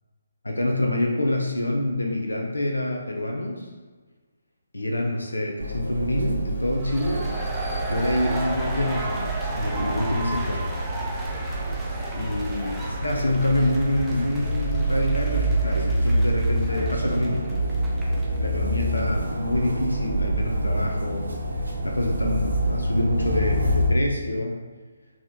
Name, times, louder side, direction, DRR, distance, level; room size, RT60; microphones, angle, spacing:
voice 1, 0.4-3.7 4.7-7.3 7.9-10.6 12.2-17.9 18.4-21.3 21.8-24.6, left 1 dB, 75° left, 1 dB, 0.6 m, -26 dB
sound 1, 5.6-23.9, right 1 dB, 65° right, 0.8 m, -27 dB
sound 2, 6.7-18.4, right 1 dB, 5° right, 0.5 m, -35 dB
4.2 x 3.0 x 3.5 m, 1.4 s
figure-of-eight pair, 140°, 0 cm